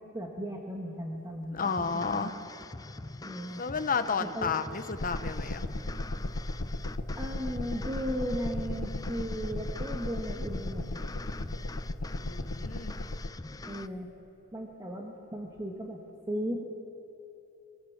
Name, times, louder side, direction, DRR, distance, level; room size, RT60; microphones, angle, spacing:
voice 1, 0.0-2.3 3.2-3.6 4.3-4.5 7.2-11.0 13.7-14.1 14.5-16.0 16.3-16.6, equal, 15° right, 0 dB, 1.7 m, -36 dB
voice 2, 1.5-2.3 3.6-5.6 12.2-12.9, left 5 dB, 40° left, 9 dB, 1.0 m, -32 dB
sound 1, 1.6-13.9, left 2 dB, 15° left, 0.5 m, -44 dB
sound 2, 5.0-13.3, left 1 dB, 80° left, 1.2 m, -36 dB
25.0 x 23.0 x 7.4 m, 2.9 s
head